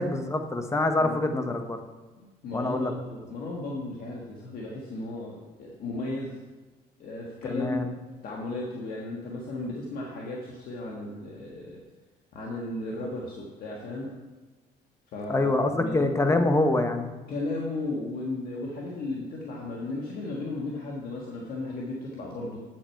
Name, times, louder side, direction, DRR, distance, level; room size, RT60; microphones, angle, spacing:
voice 1, 0.0-1.8 2.5-2.9 7.4-7.9 15.3-17.1, left 2 dB, 15° left, 6 dB, 1.0 m, -25 dB
voice 2, 1.0-1.3 2.2-6.4 7.0-7.9 8.2-11.8 12.3-14.1 15.1-16.1 17.3-22.6, left 2 dB, 60° left, -2 dB, 1.5 m, -35 dB
8.6 x 7.6 x 4.5 m, 1.3 s
cardioid pair, 110°, 17 cm